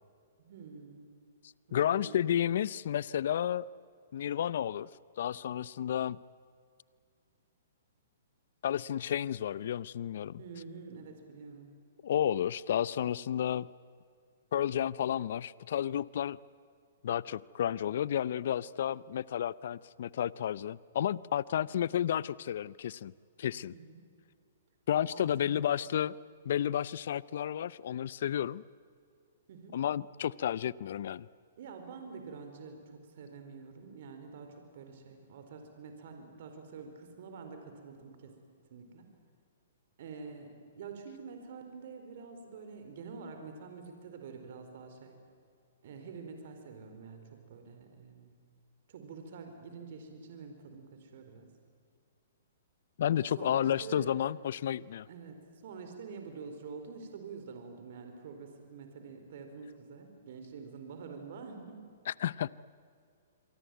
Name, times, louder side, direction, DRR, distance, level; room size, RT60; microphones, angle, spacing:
voice 1, 0.4-1.1 1.7-2.4 10.4-11.7 23.7-24.1 25.1-25.6 29.5-29.8 31.6-38.3 38.7-39.1 40.0-45.2 45.8-48.3 48.9-51.5 53.4-54.3 55.1-61.9, right 5 dB, 60° right, 6 dB, 4.4 m, -47 dB
voice 2, 1.7-3.7 4.1-4.9 5.2-6.2 8.6-10.4 12.0-13.7 14.5-16.4 17.0-23.1 23.4-23.7 24.9-26.2 26.4-28.6 29.7-31.3 53.0-55.1 62.1-62.5, left 10 dB, 65° left, 21 dB, 0.6 m, -31 dB
27.5 x 23.0 x 9.3 m, 2.2 s
hypercardioid pair, 130°, 0 cm